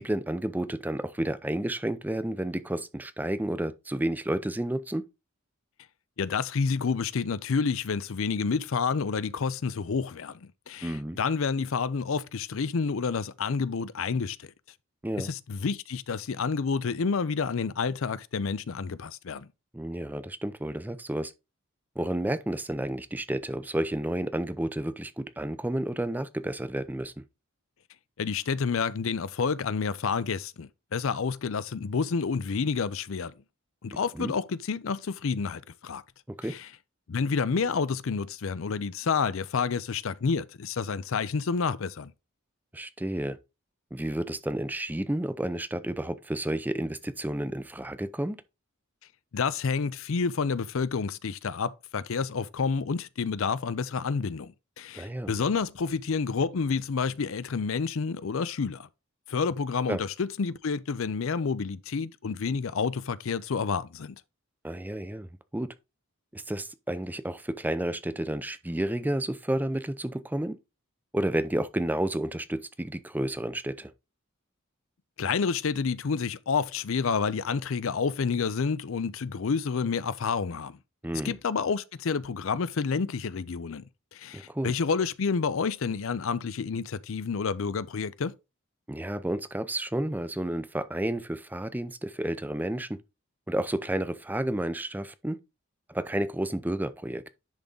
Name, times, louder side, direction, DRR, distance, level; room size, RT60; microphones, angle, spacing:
voice 1, 0.0-5.1 10.8-11.2 15.0-15.3 19.7-21.3 22.0-27.2 33.9-34.3 36.4-36.5 42.7-43.4 43.9-48.4 54.9-55.3 59.9-60.0 64.6-65.7 66.3-70.6 71.1-73.9 81.0-81.4 84.3-84.7 88.9-93.0 93.5-95.4 95.9-97.3, right 1 dB, 10° right, 0.5 m, -31 dB
voice 2, 6.2-14.5 15.2-19.5 28.2-33.3 33.8-36.0 36.5-36.7 37.1-42.1 49.3-58.9 59.3-64.2 75.2-80.8 81.2-83.8 84.1-88.3, left 5 dB, 65° left, 0.5 m, -29 dB
10.5 x 3.7 x 3.8 m
head